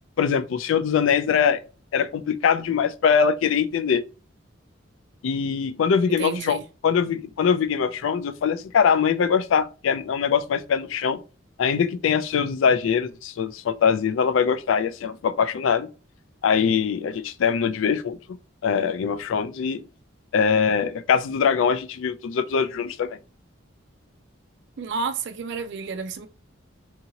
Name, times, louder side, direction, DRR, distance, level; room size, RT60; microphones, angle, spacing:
voice 1, 0.2-1.6 1.9-4.0 5.2-6.6 6.8-11.2 11.6-15.9 16.4-18.2 18.6-19.8 20.3-23.2, left 6 dB, 75° left, 0.3 m, -22 dB
voice 2, 6.1-6.6 24.8-26.3, right 5 dB, 60° right, 0.4 m, -30 dB
2.8 x 2.7 x 2.7 m
head